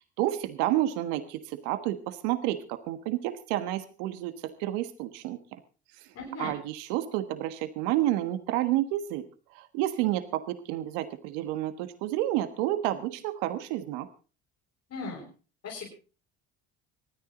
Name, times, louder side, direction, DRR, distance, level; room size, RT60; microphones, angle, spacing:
voice 1, 0.2-4.3 4.6-5.6 6.4-9.2 9.5-14.1, right 14 dB, 80° right, 10 dB, 1.4 m, -30 dB
voice 2, 6.1-6.5 14.9-15.3 15.6-15.9, left 3 dB, 50° left, -3 dB, 7.1 m, -37 dB
26.0 x 9.6 x 3.9 m, 0.35 s
supercardioid pair, 75°, 33 cm